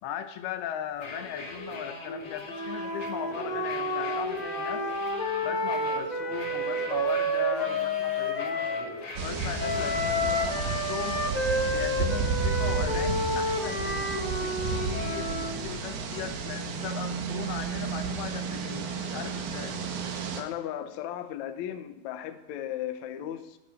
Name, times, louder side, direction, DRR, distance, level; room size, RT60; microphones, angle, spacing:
voice 1, 0.0-4.9 5.4-8.7 9.2-11.3 11.7-19.8, left 9 dB, 90° left, 9 dB, 3.0 m, -38 dB
sound 1, 0.9-10.9, left 2 dB, 50° left, 3.6 m, -41 dB
Wind instrument woodwind instrument, 2.5-8.9 9.6-15.6, left 1 dB, 20° left, 1.2 m, -30 dB
sound 2, 9.2-20.4, right 4 dB, 85° right, 3.6 m, -32 dB
voice 2, 20.4-23.6, left 11 dB, 70° left, 8 dB, 1.9 m, -36 dB
13.0 x 12.0 x 5.0 m, 0.95 s
omnidirectional pair, 4.4 m